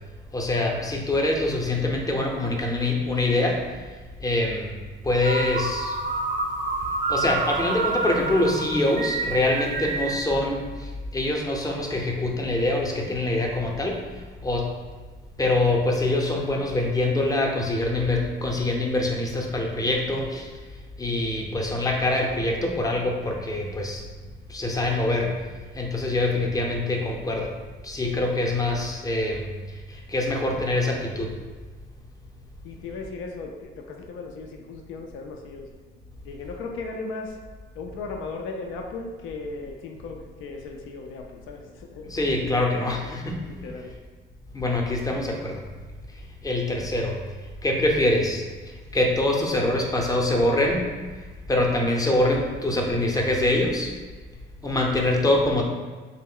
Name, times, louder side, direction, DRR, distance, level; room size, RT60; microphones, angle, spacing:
voice 1, 0.3-4.8 5.0-6.0 7.1-14.7 15.4-20.6 21.0-24.1 24.5-25.5 25.7-27.5 27.8-31.4 42.0-43.4 44.5-45.6 46.1-50.9 51.1-53.9 54.6-55.6, left 2 dB, 20° left, 0 dB, 0.6 m, -25 dB
sound 1, 5.2-10.2, right 3 dB, 45° right, 0.5 m, -28 dB
voice 2, 13.1-13.5 28.0-28.2 32.6-35.7 36.2-37.4 37.7-42.2 43.6-43.9, left 3 dB, 85° left, 2 dB, 0.4 m, -37 dB
3.2 x 2.0 x 3.6 m, 1.4 s
cardioid pair, 90°, 20 cm